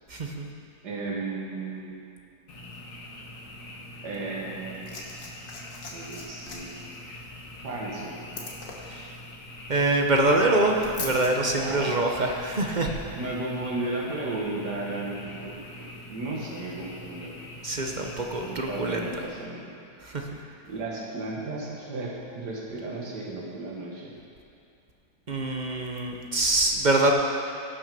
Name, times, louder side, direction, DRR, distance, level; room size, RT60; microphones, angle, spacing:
voice 1, 0.1-0.5 8.9-9.1 9.7-12.9 17.6-19.0 20.0-20.3 25.3-27.1, right 2 dB, 40° right, 1 dB, 0.7 m, -25 dB
voice 2, 0.8-2.1 4.0-5.2 5.9-7.2 7.6-8.2 11.6-11.9 12.8-17.3 18.4-19.8 20.2-24.1, right 2 dB, 90° right, -3 dB, 2.0 m, -35 dB
Frog, 2.5-19.2, left 1 dB, 85° left, 2.0 m, -44 dB
Liquid, 4.5-11.3 12.4-12.5, left 3 dB, 65° left, 1.9 m, -42 dB
17.5 x 6.1 x 5.3 m, 2.5 s
omnidirectional pair, 1.7 m